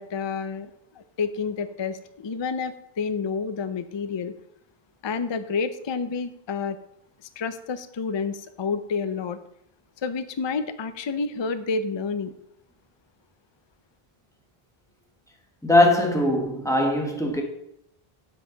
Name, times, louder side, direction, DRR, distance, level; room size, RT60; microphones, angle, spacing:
voice 1, 0.0-4.3 5.0-6.8 7.4-9.4 10.0-12.3, left 5 dB, 35° left, 0.4 m, -29 dB
voice 2, 15.6-17.4, left 1 dB, 5° left, 1.3 m, -20 dB
9.2 x 7.7 x 3.9 m
omnidirectional pair, 1.0 m